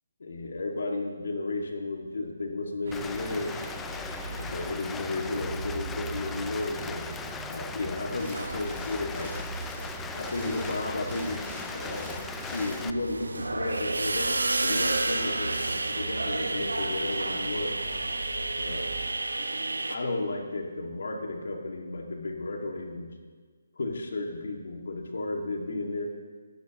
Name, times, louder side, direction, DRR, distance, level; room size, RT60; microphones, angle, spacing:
voice 1, 0.2-3.6 4.3-7.1 7.5-9.4 9.7-12.2 12.5-17.7 18.6-18.9 19.9-23.1 23.7-26.1, left 2 dB, 65° left, 2 dB, 2.2 m, -33 dB
sound 1, 2.8-19.1, right 3 dB, 55° right, 4.3 m, -40 dB
Rain, 2.9-12.9, left 6 dB, 10° left, 0.4 m, -39 dB
sound 2, 8.1-9.9 10.2-20.0, right 2 dB, 80° right, 1.3 m, -32 dB
25.5 x 12.0 x 3.1 m, 1.5 s
figure-of-eight pair, 150°, 0 cm